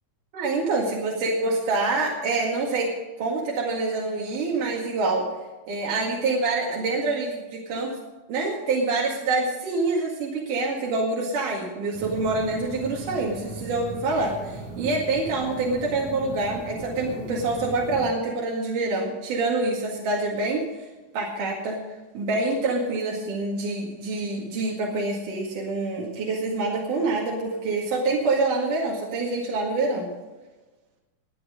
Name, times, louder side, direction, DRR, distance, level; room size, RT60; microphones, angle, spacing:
voice 1, 0.3-2.9 3.2-5.3 5.7-8.0 8.3-20.6 21.1-21.8 22.1-30.1, right 3 dB, 80° right, -3 dB, 3.7 m, -26 dB
sound 1, 11.9-18.1, right 2 dB, 60° right, 4.1 m, -38 dB
21.5 x 8.7 x 5.1 m, 1.2 s
omnidirectional pair, 3.6 m